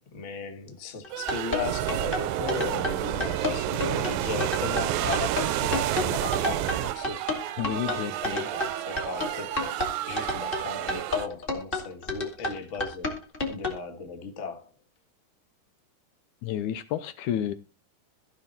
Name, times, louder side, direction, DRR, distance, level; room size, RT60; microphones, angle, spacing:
voice 1, 0.1-7.2 7.8-13.1 13.5-14.7, left 4 dB, 45° left, 1.0 m, -36 dB
sound 1, 1.0-13.8, left 2 dB, 15° left, 2.3 m, -30 dB
sound 2, 1.1-11.3, right 13 dB, 70° right, 2.0 m, -34 dB
sound 3, 1.6-6.9, right 14 dB, 90° right, 2.4 m, -29 dB
voice 2, 7.6-8.5 16.4-17.5, left 10 dB, 75° left, 2.0 m, -31 dB
15.5 x 5.8 x 4.3 m
omnidirectional pair, 3.9 m